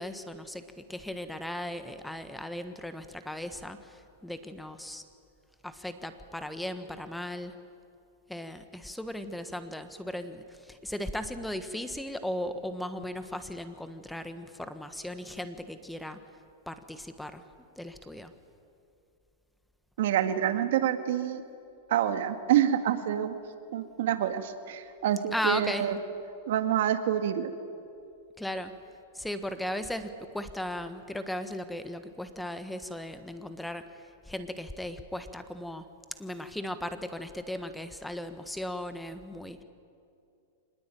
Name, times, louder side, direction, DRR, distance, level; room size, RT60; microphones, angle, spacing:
voice 1, 0.0-5.0 5.6-7.5 8.3-16.2 16.7-17.4 17.8-18.3 25.3-25.8 28.4-28.7 29.1-35.8 36.2-39.6, left 1 dB, 5° left, 10 dB, 1.3 m, -37 dB
voice 2, 20.0-21.4 21.9-23.4 23.7-26.0 26.5-27.5, right 10 dB, 70° right, 8 dB, 1.9 m, -27 dB
25.5 x 20.0 x 9.2 m, 2.6 s
hypercardioid pair, 135°, 0 cm